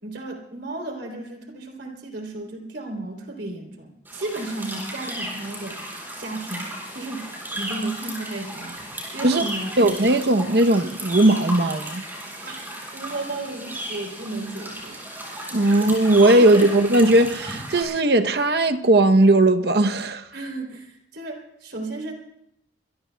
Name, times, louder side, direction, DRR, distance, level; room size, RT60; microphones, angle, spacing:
voice 1, 0.0-7.3 7.6-9.8 12.4-12.6 12.9-15.0 15.6-15.8 16.4-16.7 20.3-22.1, right 2 dB, 80° right, 3.4 m, -34 dB
sound 1, 4.0-17.8, right 1 dB, 10° right, 7.3 m, -35 dB
voice 2, 9.8-12.0 15.5-20.2, right 1 dB, 65° right, 0.8 m, -18 dB
26.5 x 22.5 x 2.3 m
head